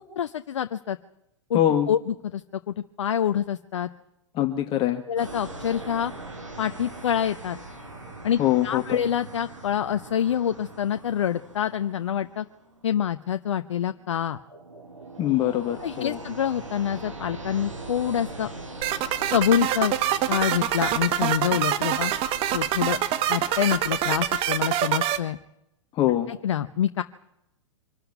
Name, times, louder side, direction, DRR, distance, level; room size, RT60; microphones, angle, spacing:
voice 1, 0.2-1.0 1.5-1.6 1.9-3.9 5.1-6.1 6.6-7.6 8.2-12.4 12.8-14.4 15.8-18.5 19.3-19.9 20.3-22.1 22.5-23.0 23.3-25.4 26.3-27.0, left 9 dB, 65° left, 10 dB, 0.9 m, -26 dB
voice 2, 1.5-1.9 4.3-5.0 8.4-9.0 15.2-16.2 25.9-26.3, left 12 dB, 35° left, 5 dB, 1.7 m, -23 dB
sound 1, 5.2-23.7, right 2 dB, 85° right, 6.8 m, -42 dB
sound 2, 18.8-25.2, right 11 dB, 35° right, 1.6 m, -25 dB
24.5 x 13.5 x 9.6 m, 0.84 s
figure-of-eight pair, 105°, 16 cm